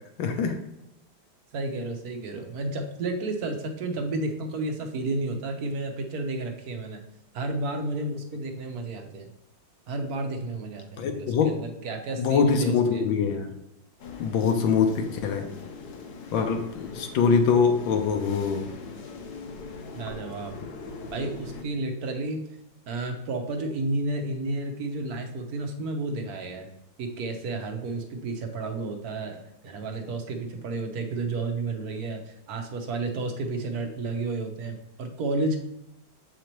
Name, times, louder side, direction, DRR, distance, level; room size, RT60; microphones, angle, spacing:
voice 1, 0.2-0.6 11.0-11.5 12.2-13.5 14.2-15.5 16.3-18.7, left 5 dB, 85° left, 5 dB, 1.6 m, -23 dB
voice 2, 1.5-7.0 7.3-9.3 9.9-13.1 19.9-20.6 21.1-22.4 22.9-26.7 27.0-35.6, right 2 dB, 60° right, 4 dB, 1.2 m, -31 dB
sound 1, 14.0-21.6, left 4 dB, 65° left, 1.2 m, -41 dB
7.7 x 5.0 x 3.0 m, 0.84 s
omnidirectional pair, 2.1 m